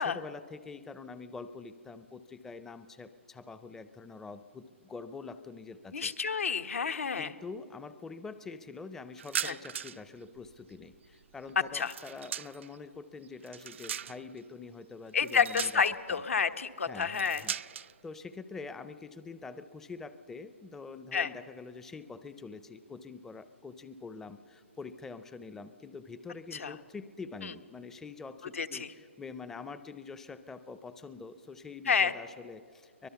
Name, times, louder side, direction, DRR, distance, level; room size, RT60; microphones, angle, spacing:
voice 1, 0.0-6.1 7.2-15.8 16.1-16.2 16.9-33.1, left 4 dB, 5° left, 12 dB, 0.4 m, -45 dB
voice 2, 5.9-7.3 9.4-9.6 11.7-11.9 15.1-17.4 21.1-21.3 26.5-26.7 27.4-27.5 28.5-28.9 31.9-32.1, left 6 dB, 90° left, 8 dB, 1.2 m, -29 dB
sound 1, 9.2-10.1 10.4-12.8 13.2-14.4 15.2-16.1 17.0-17.9, right 8 dB, 65° right, 0.5 m, -39 dB
24.0 x 20.0 x 6.9 m, 2.2 s
hypercardioid pair, 155°, 7 cm